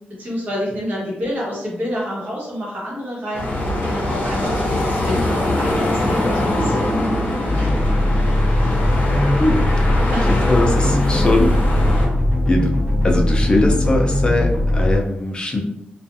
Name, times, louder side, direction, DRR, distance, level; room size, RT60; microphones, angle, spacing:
voice 1, 0.2-8.0 10.0-10.4, equal, 50° right, -5 dB, 1.2 m, -29 dB
sound 1, 3.3-12.1, left 1 dB, 50° left, 0.8 m, -22 dB
sound 2, 7.5-15.0, left 1 dB, 30° right, 1.2 m, -19 dB
voice 2, 9.4-10.0 10.3-11.6 12.5-15.6, left 1 dB, 25° left, 1 dB, 0.5 m, -21 dB
2.4 x 2.4 x 2.6 m, 0.81 s
wide cardioid pair, 115°, 4 cm